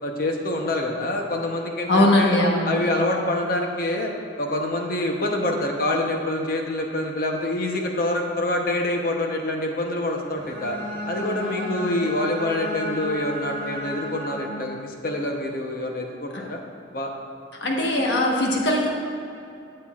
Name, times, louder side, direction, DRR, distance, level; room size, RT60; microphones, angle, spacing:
voice 1, 0.0-2.4 2.7-4.1 4.4-10.8 11.1-16.6 16.9-17.1, left 1 dB, 50° left, 2 dB, 0.9 m, -26 dB
voice 2, 1.9-3.0 11.2-12.1 16.3-16.4 17.6-18.9, left 1 dB, 70° left, -1 dB, 1.3 m, -22 dB
Bowed string instrument, 10.3-14.8, equal, 15° left, 1.8 m, -33 dB
13.0 x 7.6 x 2.5 m, 2.6 s
head